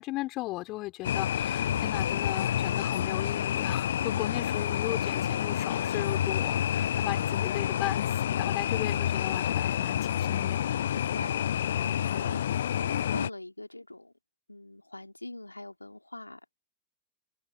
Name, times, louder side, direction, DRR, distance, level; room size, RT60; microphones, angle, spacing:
voice 1, 0.0-10.6, left 19 dB, 45° left, 4.7 m, -36 dB
sound 1, 1.0-13.3, left 10 dB, 65° left, 0.4 m, -29 dB
voice 2, 10.9-14.1 14.5-16.4, left 2 dB, 90° left, 3.2 m, -42 dB
figure-of-eight pair, 85°, 0 cm